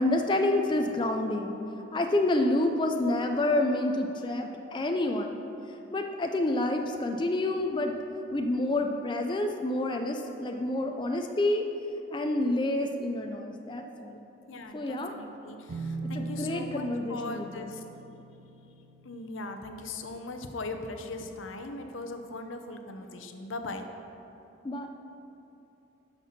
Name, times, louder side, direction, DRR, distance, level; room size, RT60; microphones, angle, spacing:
voice 1, 0.0-1.6 1.9-5.4 5.9-7.9 8.3-11.7 12.1-14.2 14.7-15.1 16.1-17.7 24.6-24.9, left 1 dB, 25° left, 4 dB, 0.4 m, -28 dB
voice 2, 14.5-17.8 19.0-23.9, left 2 dB, 85° left, 6 dB, 0.7 m, -39 dB
sound 1, 15.7-21.3, right 3 dB, 90° right, 0.6 m, -42 dB
11.5 x 4.5 x 5.8 m, 2.9 s
head